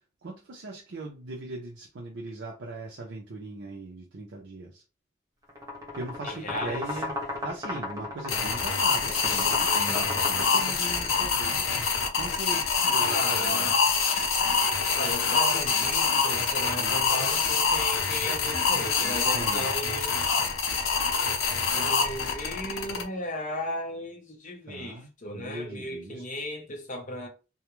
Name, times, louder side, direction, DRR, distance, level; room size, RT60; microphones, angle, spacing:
voice 1, 0.2-4.8 5.9-11.7 12.2-13.7 16.8-17.0 19.3-19.7 24.7-25.1 25.3-26.2, right 2 dB, 65° right, 0.5 m, -39 dB
sound 1, 5.5-11.2, left 2 dB, 15° right, 0.6 m, -35 dB
voice 2, 6.2-6.9 13.0-13.7 14.9-20.5 21.7-27.3, left 1 dB, 40° left, 0.6 m, -36 dB
sound 2, 8.3-23.0, left 5 dB, 85° left, 0.6 m, -25 dB
2.3 x 2.0 x 2.9 m
head